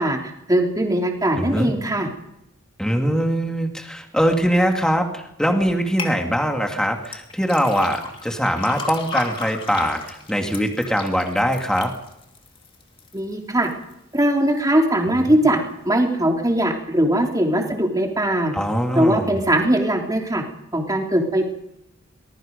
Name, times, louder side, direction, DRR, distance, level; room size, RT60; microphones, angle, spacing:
voice 1, 0.0-2.1 13.1-13.7 14.1-15.6 15.8-18.5 18.9-20.4 20.7-21.5, right 1 dB, 20° right, 2 dB, 3.2 m, -20 dB
voice 2, 1.3-1.7 2.8-11.9 15.1-15.2 18.5-19.4, equal, 5° left, 3 dB, 2.5 m, -22 dB
sound 1, 6.0-6.2 7.1-13.2 13.6-14.2 14.6-14.7, left 3 dB, 25° left, 2.6 m, -34 dB
23.5 x 21.0 x 5.3 m, 0.83 s
head